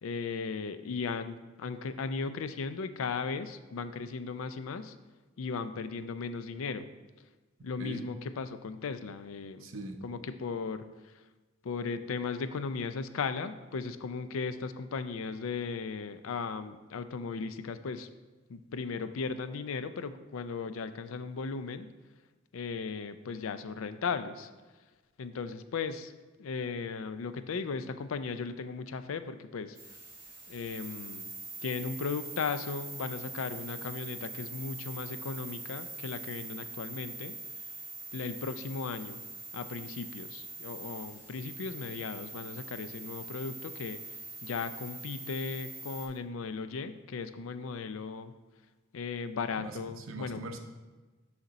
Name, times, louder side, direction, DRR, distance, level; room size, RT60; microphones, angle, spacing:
voice 1, 0.0-5.0 5.4-6.9 7.6-9.7 10.0-10.8 11.6-18.1 18.5-21.9 22.5-24.5 25.2-26.1 26.4-29.8 30.5-31.3 31.6-37.3 38.1-39.2 39.5-44.0 44.4-48.3 48.9-50.4, left 5 dB, 75° left, 11 dB, 0.4 m, -36 dB
voice 2, 9.6-10.0 49.6-50.6, right 2 dB, 75° right, 5 dB, 0.7 m, -41 dB
sound 1, 29.7-46.1, right 3 dB, 15° right, 1.2 m, -43 dB
6.5 x 5.8 x 4.0 m, 1.3 s
head